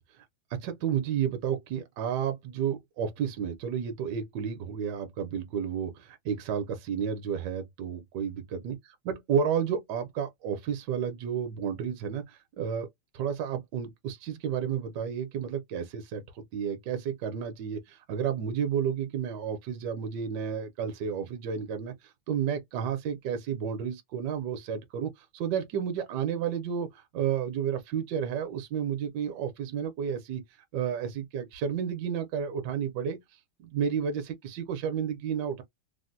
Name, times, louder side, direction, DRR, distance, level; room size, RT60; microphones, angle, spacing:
voice 1, 0.5-8.8 9.1-12.9 13.1-30.4 30.7-33.2 33.6-35.6, right 8 dB, 70° right, 1.1 m, -31 dB
3.4 x 2.1 x 2.6 m
omnidirectional pair, 2.1 m